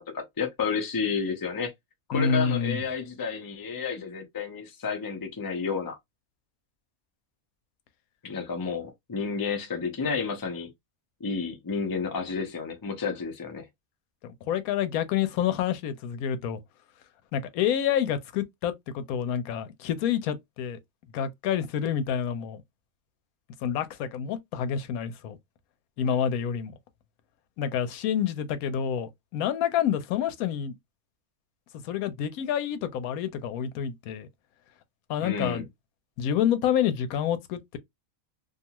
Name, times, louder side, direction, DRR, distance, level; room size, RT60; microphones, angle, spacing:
voice 1, 0.0-1.7 2.1-6.0 8.2-10.7 11.2-13.7 35.2-35.7, left 5 dB, 25° left, 0.4 m, -31 dB
voice 2, 2.1-2.8 14.2-16.6 17.3-20.8 21.1-22.6 23.6-25.4 26.0-26.7 27.6-30.8 31.7-34.3 35.1-35.6 36.2-37.8, left 8 dB, 90° left, 1.0 m, -28 dB
2.5 x 2.3 x 2.8 m
omnidirectional pair, 1.5 m